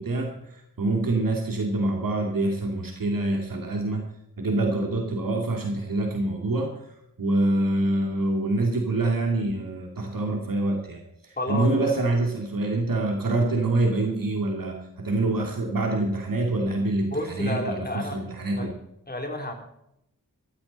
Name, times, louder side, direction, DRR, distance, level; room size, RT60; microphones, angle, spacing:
voice 1, 0.0-4.1 4.4-6.8 7.2-18.7, right 2 dB, 75° right, 1 dB, 2.6 m, -26 dB
voice 2, 11.4-12.0 17.1-18.2 18.5-18.7 19.1-19.5, left 2 dB, 30° left, 3 dB, 3.4 m, -31 dB
15.0 x 13.0 x 4.3 m, 0.81 s
wide cardioid pair, 90°, 34 cm